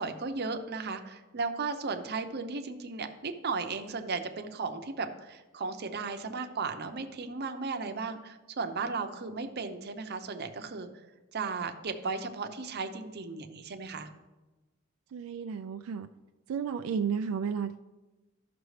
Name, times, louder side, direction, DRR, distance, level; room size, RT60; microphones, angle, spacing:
voice 1, 0.0-10.9 11.3-14.1, right 4 dB, 50° right, 7 dB, 0.7 m, -35 dB
voice 2, 15.1-16.1 16.5-17.8, right 6 dB, 85° right, 8 dB, 0.3 m, -32 dB
14.0 x 6.0 x 3.2 m, 1.2 s
head